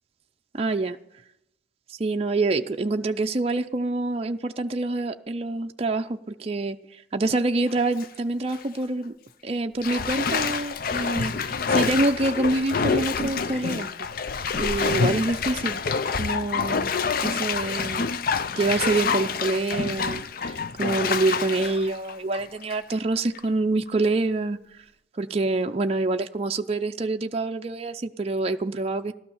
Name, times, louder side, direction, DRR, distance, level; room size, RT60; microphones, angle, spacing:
voice 1, 0.5-1.0 1.9-9.1 9.4-14.1 14.6-15.8 16.2-16.9 17.2-18.1 18.6-24.6 25.1-29.1, right 2 dB, 30° right, 5 dB, 0.5 m, -26 dB
Bathtub (filling or washing), 7.6-8.1 8.5-8.6 9.8-22.9 23.4-23.5, left 5 dB, 50° left, 0.5 m, -27 dB
15.0 x 12.5 x 7.1 m, 0.83 s
head